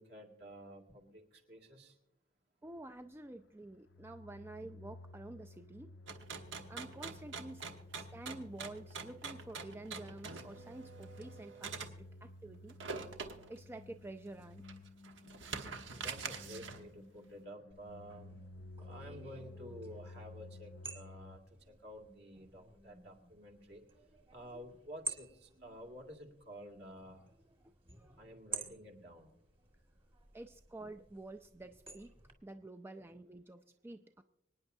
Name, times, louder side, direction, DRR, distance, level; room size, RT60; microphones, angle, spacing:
voice 1, 0.0-2.0 15.9-18.4 18.8-21.4 21.7-23.8 24.3-27.3 28.2-29.3, equal, 60° right, 2 dB, 2.3 m, -51 dB
sound 1, 2.6-21.4, left 2 dB, 65° left, 0.5 m, -54 dB
voice 2, 2.6-5.9 6.7-7.7 7.9-12.8 13.5-14.6 27.6-27.7 30.3-32.1 32.4-34.2, right 2 dB, 10° right, 7 dB, 0.3 m, -49 dB
sound 2, 6.1-11.9 12.7-13.6 14.1-14.2 14.6-16.9, right 5 dB, 80° right, 1.2 m, -45 dB
sound 3, 17.7-32.3, right 3 dB, 30° right, 1.7 m, -51 dB
25.5 x 9.6 x 2.7 m, 0.84 s
head